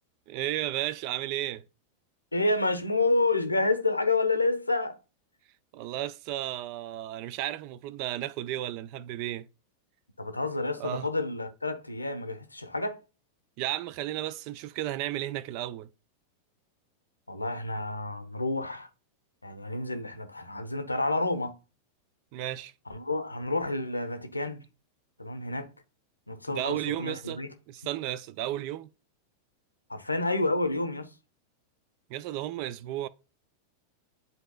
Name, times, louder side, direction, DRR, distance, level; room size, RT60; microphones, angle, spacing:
voice 1, 0.3-1.6 5.7-9.5 10.8-11.1 13.6-15.9 22.3-22.7 26.5-27.4 27.7-28.9 32.1-33.1, right 13 dB, 45° right, 0.4 m, -33 dB
voice 2, 2.3-5.0 10.2-13.0 17.3-18.9 19.4-21.6 22.9-24.6 25.2-25.7 26.3-27.5 29.9-31.1, left 2 dB, 85° left, 0.8 m, -29 dB
10.5 x 4.0 x 2.2 m
figure-of-eight pair, 90°, 0 cm